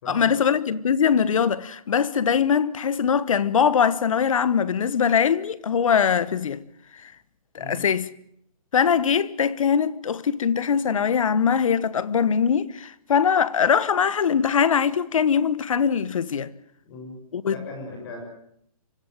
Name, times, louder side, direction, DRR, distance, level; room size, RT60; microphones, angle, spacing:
voice 1, 0.1-6.6 6.9-7.1 7.5-8.1 8.7-16.5 17.3-17.5, left 7 dB, 60° left, 1.3 m, -22 dB
voice 2, 16.8-17.2 17.5-18.2, left 2 dB, 40° left, 7.0 m, -38 dB
25.0 x 15.0 x 9.2 m
hypercardioid pair, 160°, 19 cm